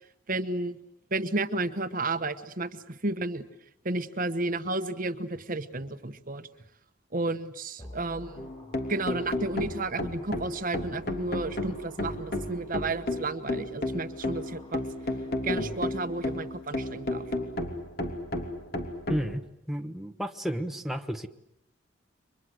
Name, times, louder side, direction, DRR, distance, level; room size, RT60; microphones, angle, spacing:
voice 1, 0.3-0.8 1.1-3.4 3.8-6.4 7.1-8.5 8.9-14.8 15.4-17.2, right 2 dB, 45° right, 10 dB, 1.3 m, -32 dB
sound 1, 7.8-13.2 13.9-17.1 17.4-17.5, equal, 25° left, 7.9 m, -53 dB
sound 2, 8.4-19.3, left 1 dB, 50° left, 3.3 m, -32 dB
voice 2, 19.1-21.3, equal, ahead, 4 dB, 1.2 m, -32 dB
30.0 x 25.0 x 7.9 m, 0.75 s
head